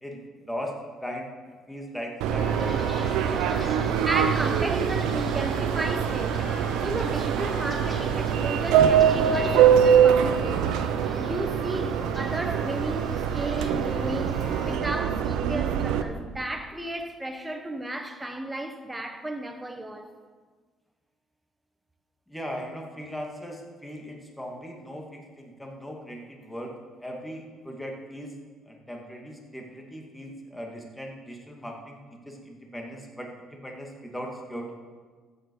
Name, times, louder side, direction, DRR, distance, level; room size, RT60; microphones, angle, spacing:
voice 1, 1.7-2.8 22.3-26.7 27.0-28.3 28.7-34.7, equal, 5° left, 2.3 m, -38 dB
Subway metro underground, 2.2-16.0, right 8 dB, 85° right, 0.8 m, -24 dB
sound 1, 2.4-14.8, left 1 dB, 25° left, 2.8 m, -42 dB
voice 2, 3.6-10.9 11.2-20.1, right 1 dB, 10° right, 1.4 m, -34 dB
14.0 x 8.6 x 4.9 m
supercardioid pair, 80°, 0 cm